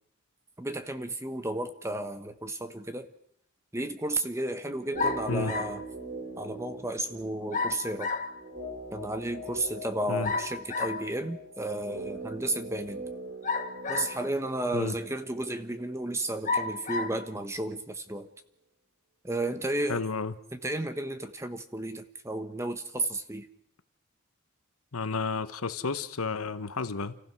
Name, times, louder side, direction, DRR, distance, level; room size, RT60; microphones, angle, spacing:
voice 1, 0.6-3.1 3.7-5.8 6.4-8.1 8.9-13.0 13.9-18.3 19.2-20.0 20.5-23.5, right 1 dB, 15° right, 1.1 m, -33 dB
sound 1, 4.8-16.9 17.2-17.3, right 2 dB, 55° right, 3.7 m, -42 dB
sound 2, 5.0-5.8 7.5-8.3 10.2-11.0 13.4-14.3 15.0-15.1 16.4-17.2, left 4 dB, 35° left, 1.5 m, -31 dB
voice 2, 19.9-20.3 24.9-27.2, left 4 dB, 80° left, 1.1 m, -31 dB
29.0 x 15.0 x 6.2 m
head